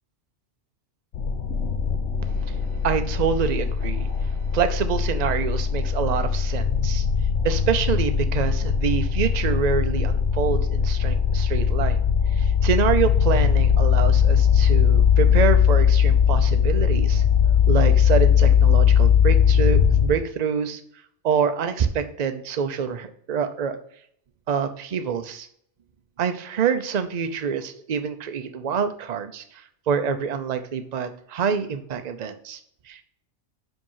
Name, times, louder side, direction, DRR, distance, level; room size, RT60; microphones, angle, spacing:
sound 1, 1.1-20.1, left 7 dB, 75° left, 1.2 m, -20 dB
voice 1, 2.8-7.1 7.4-12.1 12.3-17.2 17.7-20.8 21.2-23.8 24.5-25.5 26.2-32.6 32.9-33.0, right 7 dB, 45° right, 8 dB, 0.7 m, -26 dB
5.7 x 5.3 x 5.5 m, 0.66 s
omnidirectional pair, 1.2 m